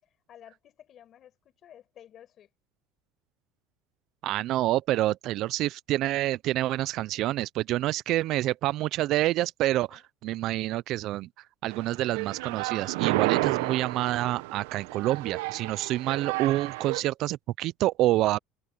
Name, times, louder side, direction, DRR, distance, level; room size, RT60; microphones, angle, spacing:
voice 1, 0.0-2.5 9.9-10.0, left 10 dB, 30° left, 5.0 m, -53 dB
voice 2, 4.2-11.3 11.6-18.4, right 15 dB, 40° right, 0.3 m, -27 dB
sound 1, 11.7-17.0, right 20 dB, 85° right, 0.7 m, -31 dB
cardioid pair, 175°, 0 cm